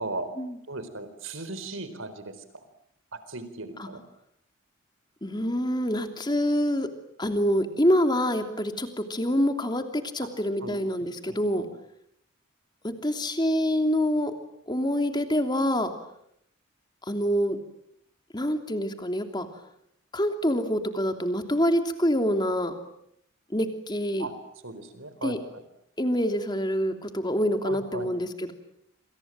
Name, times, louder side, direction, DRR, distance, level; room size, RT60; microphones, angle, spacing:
voice 1, 0.7-2.3 3.3-4.0 10.6-10.8 11.3-11.6 24.2-24.3 24.6-25.4 27.6-28.1, right 2 dB, 75° right, 12 dB, 4.4 m, -36 dB
voice 2, 5.2-6.9 7.2-11.6 12.8-14.3 14.7-15.9 17.1-17.6 18.3-19.5 20.1-22.7 23.5-24.3 25.2-25.4 26.0-28.5, equal, 20° left, 6 dB, 3.0 m, -26 dB
27.5 x 27.0 x 7.6 m, 0.73 s
head